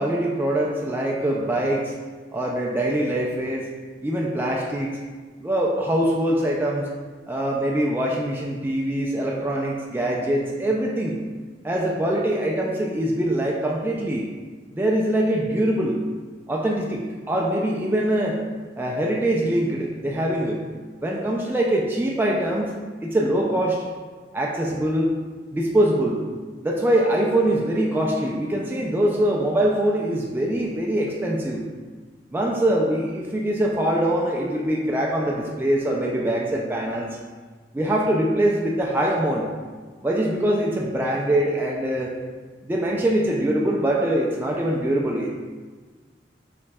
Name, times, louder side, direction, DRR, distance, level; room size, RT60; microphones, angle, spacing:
voice 1, 0.0-1.9 2.3-3.7 4.0-5.0 5.4-6.9 7.3-11.2 11.6-14.3 14.7-16.0 16.5-18.4 18.8-20.6 21.0-22.7 23.0-23.8 24.3-25.1 25.5-26.2 26.6-31.7 32.3-37.2 37.7-39.5 40.0-42.1 42.6-45.3, right 1 dB, 10° right, -2 dB, 0.3 m, -23 dB
6.0 x 3.1 x 2.3 m, 1.5 s
head